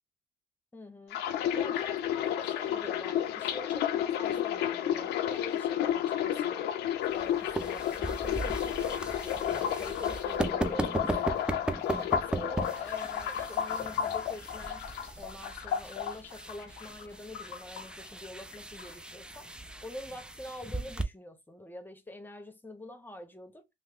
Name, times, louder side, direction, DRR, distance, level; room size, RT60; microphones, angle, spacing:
voice 1, 0.7-1.2 1.5-6.6 7.1-11.4 12.0-14.9 15.2-19.5 19.8-23.7, left 1 dB, 10° left, 0.8 m, -46 dB
sound 1, 1.1-17.1 17.3-18.3 18.5-18.9, left 10 dB, 80° left, 0.5 m, -32 dB
sound 2, 7.1-21.0, right 2 dB, 5° right, 0.4 m, -38 dB
3.1 x 2.0 x 3.5 m
cardioid pair, 110°, 17 cm